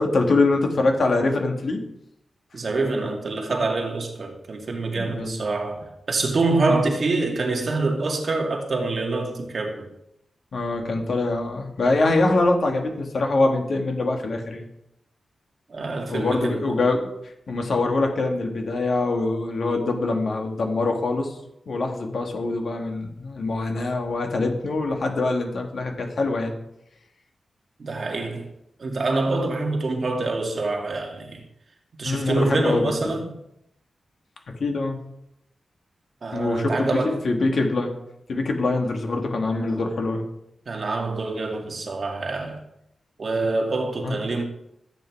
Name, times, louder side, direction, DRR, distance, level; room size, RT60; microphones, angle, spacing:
voice 1, 0.0-1.8 5.0-5.4 6.7-6.9 10.5-14.6 16.1-17.1 17.5-21.4 21.7-26.5 32.0-32.9 34.6-35.0 36.3-37.9 38.3-40.2 44.0-44.2, left 2 dB, 60° left, 2.4 m, -24 dB
voice 2, 2.5-9.9 15.7-16.6 27.8-28.5 28.8-31.4 32.0-33.3 36.2-37.2 39.7-39.8 40.7-42.6 43.2-44.4, right 3 dB, 50° right, 2.3 m, -26 dB
13.5 x 9.3 x 4.8 m
wide cardioid pair, 135°, 0 cm